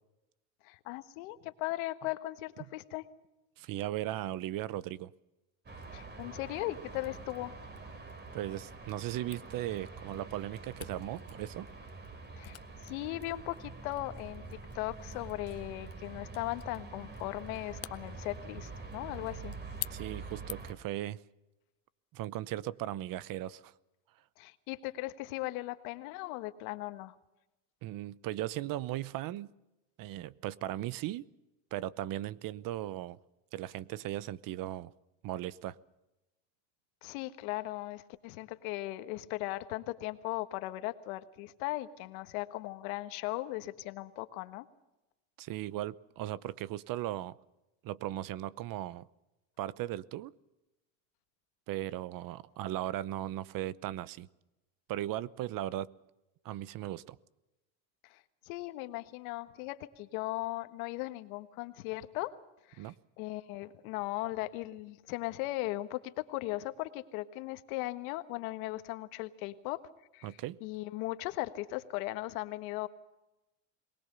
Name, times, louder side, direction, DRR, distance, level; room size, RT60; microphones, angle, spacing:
voice 1, 0.6-3.1 5.9-7.6 12.4-19.5 24.4-27.2 37.0-44.7 58.0-62.4 62.6-72.9, left 18 dB, 80° left, 11 dB, 1.5 m, -38 dB
voice 2, 3.6-5.1 8.3-11.7 19.9-21.2 22.1-23.7 27.8-29.5 30.0-31.3 31.7-33.2 33.5-34.9 35.2-35.8 45.4-47.4 47.8-49.1 49.6-50.3 51.7-54.3 54.9-55.9 56.4-57.2 62.8-62.9 70.2-70.6, right 14 dB, 50° right, 20 dB, 0.8 m, -37 dB
sound 1, 5.7-20.7, right 3 dB, 25° right, 3.3 m, -46 dB
Camera, 9.3-20.9, left 13 dB, 35° left, 0.8 m, -50 dB
22.5 x 20.0 x 6.8 m, 0.98 s
supercardioid pair, 115°, 42 cm